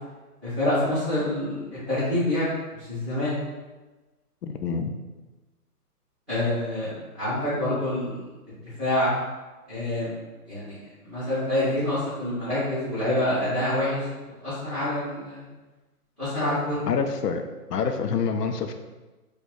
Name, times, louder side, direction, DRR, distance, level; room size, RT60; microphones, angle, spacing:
voice 1, 0.4-2.5 2.8-3.4 6.3-9.1 9.7-10.1 10.5-10.8 11.0-14.1 14.4-15.4 16.2-16.8, left 1 dB, ahead, -14 dB, 1.0 m, -27 dB
voice 2, 4.4-4.9 16.9-17.4 17.7-18.7, left 5 dB, 85° left, 6 dB, 0.6 m, -26 dB
4.2 x 2.4 x 3.0 m, 1.2 s
hypercardioid pair, 175°, 46 cm